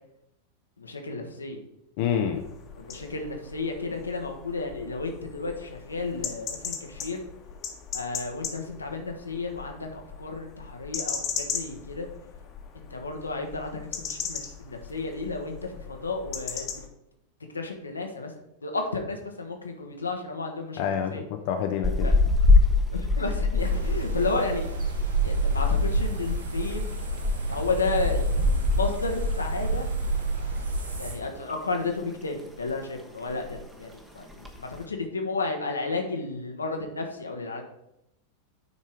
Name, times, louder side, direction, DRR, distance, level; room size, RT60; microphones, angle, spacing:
voice 1, 0.8-1.6 2.8-7.2 7.9-12.1 12.7-16.7 17.5-18.3 18.6-21.2 22.0-22.1 22.9-24.7 25.2-26.9 27.5-29.9 31.0-37.6, left 3 dB, 75° left, 3 dB, 1.2 m, -32 dB
voice 2, 2.0-2.4 20.8-22.1, left 8 dB, 50° left, 5 dB, 0.7 m, -27 dB
sound 1, 2.3-16.9, left 7 dB, 30° left, 1.3 m, -38 dB
sound 2, 21.8-30.4 30.6-30.8 31.2-32.1 32.4-32.8 33.0-33.1 33.3-33.7 34.3-34.8, left 3 dB, 5° right, 1.1 m, -25 dB
sound 3, 23.6-31.1, right 3 dB, 80° right, 2.5 m, -29 dB
9.5 x 4.3 x 4.8 m, 0.83 s
figure-of-eight pair, 90°, 0 cm